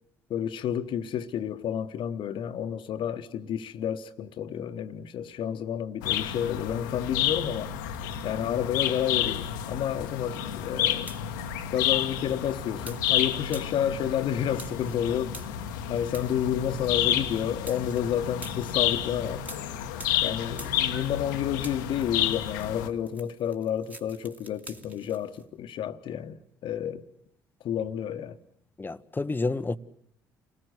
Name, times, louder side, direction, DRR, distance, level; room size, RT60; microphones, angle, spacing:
voice 1, 0.3-7.7 8.2-11.1 11.7-15.4 15.9-19.5 20.2-27.1 27.6-28.4, left 9 dB, 55° left, 1.2 m, -30 dB
sound 1, 6.0-22.9, left 11 dB, 75° left, 1.2 m, -30 dB
sound 2, 7.4-8.6 8.9-21.3 21.5-25.4, right 1 dB, 15° right, 2.4 m, -49 dB
voice 2, 28.8-29.8, left 3 dB, 20° left, 0.9 m, -29 dB
29.0 x 19.0 x 8.0 m
figure-of-eight pair, 50°, 10 cm